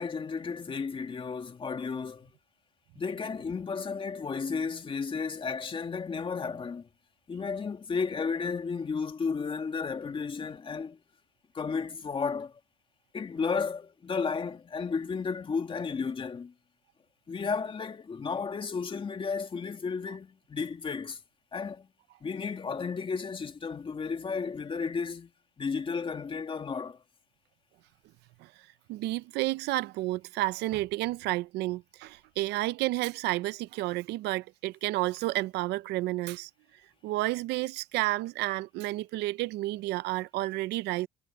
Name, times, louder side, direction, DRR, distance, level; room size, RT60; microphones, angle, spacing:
voice 1, 0.0-2.3 3.0-6.9 7.3-11.0 11.5-12.6 13.1-16.5 17.3-21.2 21.5-21.9 22.2-25.3 25.6-27.0, left 5 dB, 30° left, 2.2 m, -33 dB
voice 2, 28.9-36.5 37.0-41.1, right 18 dB, 85° right, 0.6 m, -31 dB
cardioid pair, 110°, 17 cm